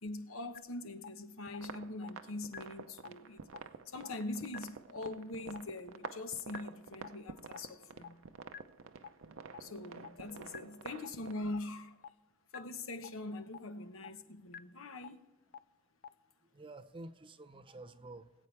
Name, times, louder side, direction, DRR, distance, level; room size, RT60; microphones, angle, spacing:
voice 1, 0.0-3.4 3.9-8.2 9.6-12.0 12.5-15.2, left 2 dB, 90° left, 1.0 m, -43 dB
sound 1, 0.5-0.6 1.0-1.1 1.5-1.6 2.0-2.1 2.5-2.6 3.0-3.1 3.5-3.6 4.0-4.1 4.5-4.6 5.0-5.1 5.5-5.6 6.0-6.1 6.5-6.6 7.0-7.1 7.5-7.6 8.0-8.1 8.5-8.6 9.0-9.1 9.5-9.6 10.0-10.1 10.5-10.6 11.0-11.1 11.5-11.6 12.0-12.1 12.5-12.6 13.0-13.1 13.5-13.6 14.0-14.1 14.5-14.6 15.0-15.1 15.5-15.6 16.0-16.1, left 7 dB, 45° left, 0.4 m, -45 dB
sound 2, 1.5-11.3, right 5 dB, 85° right, 0.7 m, -49 dB
voice 2, 16.5-18.3, right 2 dB, 25° right, 0.6 m, -50 dB
21.5 x 8.4 x 3.3 m
head